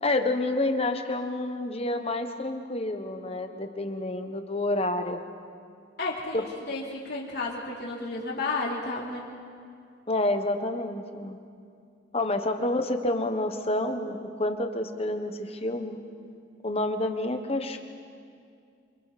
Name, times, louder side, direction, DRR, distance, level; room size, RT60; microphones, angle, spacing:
voice 1, 0.0-5.2 6.3-6.4 10.1-11.4 12.1-16.0 16.6-17.8, left 2 dB, 30° left, 6 dB, 1.3 m, -28 dB
voice 2, 6.0-9.2, left 3 dB, 55° left, -3 dB, 3.8 m, -32 dB
28.5 x 26.5 x 4.3 m, 2.3 s
head